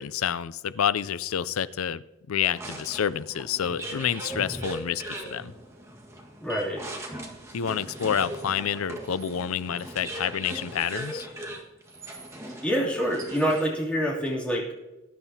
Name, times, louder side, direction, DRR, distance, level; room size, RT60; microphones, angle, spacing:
voice 1, 0.0-2.0 2.3-5.5 7.5-11.3, left 8 dB, 85° left, 17 dB, 0.4 m, -28 dB
sound 1, 2.5-13.8, right 1 dB, 15° right, 1.7 m, -39 dB
voice 2, 6.4-6.8 12.6-14.8, equal, 5° left, -5 dB, 3.0 m, -26 dB
20.5 x 11.0 x 2.8 m, 1.1 s
head